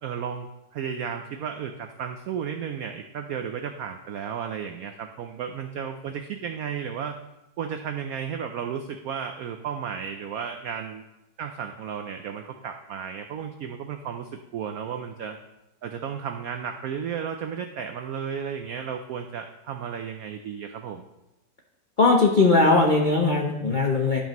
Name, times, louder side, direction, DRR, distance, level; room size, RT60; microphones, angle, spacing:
voice 1, 0.0-7.2 7.6-11.0 11.4-15.4 15.8-21.0, right 7 dB, 85° right, 5 dB, 0.7 m, -33 dB
voice 2, 22.0-24.2, left 3 dB, 70° left, 0 dB, 0.4 m, -19 dB
12.0 x 5.5 x 3.0 m, 0.94 s
omnidirectional pair, 2.1 m